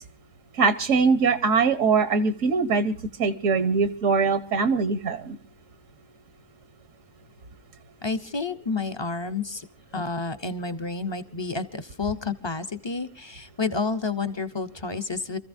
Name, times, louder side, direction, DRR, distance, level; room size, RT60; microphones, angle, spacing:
voice 1, 0.6-2.9 3.2-5.4, right 4 dB, 80° right, 10 dB, 1.4 m, -22 dB
voice 2, 8.0-9.7 9.9-15.4, left 4 dB, 30° left, 9 dB, 0.6 m, -30 dB
28.5 x 14.5 x 2.6 m, 0.41 s
omnidirectional pair, 1.3 m